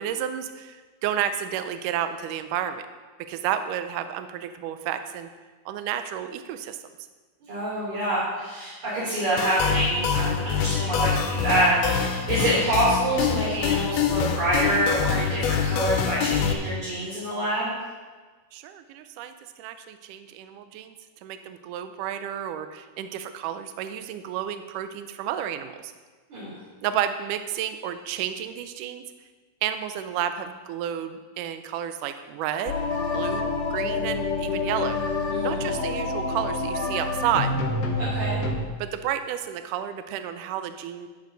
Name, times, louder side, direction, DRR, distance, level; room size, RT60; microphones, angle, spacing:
voice 1, 0.0-2.8 3.3-5.3 5.7-6.8 18.5-20.9 21.2-25.9 26.8-29.0 29.6-32.8 33.1-35.0 35.4-37.5 38.8-41.1, right 10 dB, 80° right, 9 dB, 1.9 m, -31 dB
voice 2, 7.5-17.7 26.3-26.6 35.3-35.6 38.0-38.4, right 1 dB, 50° right, -11 dB, 5.5 m, -26 dB
sound 1, 9.4-16.5, left 7 dB, 85° left, 2.7 m, -25 dB
sound 2, 32.7-38.5, left 3 dB, 60° left, 1.9 m, -27 dB
11.0 x 10.5 x 4.0 m, 1.4 s
omnidirectional pair, 4.4 m